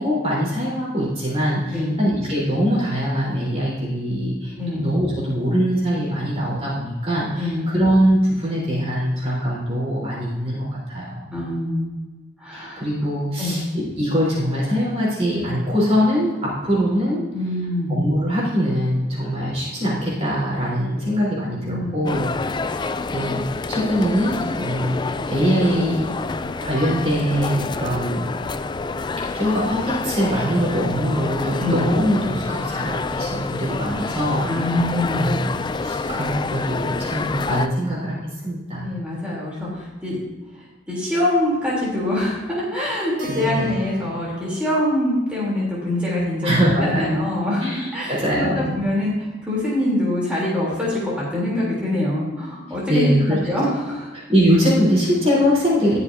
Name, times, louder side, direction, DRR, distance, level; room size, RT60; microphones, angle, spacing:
voice 1, 0.0-11.4 12.5-17.2 17.9-22.3 22.8-26.1 26.6-28.3 29.3-34.5 35.1-38.2 38.4-38.9 43.3-43.7 46.4-47.2 47.6-48.8 52.9-53.4 54.1-56.0, equal, 35° right, -7 dB, 4.1 m, -22 dB
voice 2, 11.3-12.0 12.4-12.8 13.4-13.6 17.3-17.9 21.5-21.9 31.6-31.8 34.5-35.2 38.7-40.2 40.9-46.5 46.8-47.7 47.9-53.2 53.5-54.1, left 1 dB, 5° right, -7 dB, 3.5 m, -24 dB
sound 1, 22.1-37.7, left 3 dB, 25° left, 0.3 m, -28 dB
Keyboard (musical), 43.2-47.4, left 1 dB, 75° right, 4.0 m, -42 dB
21.0 x 7.0 x 2.8 m, 1.2 s
head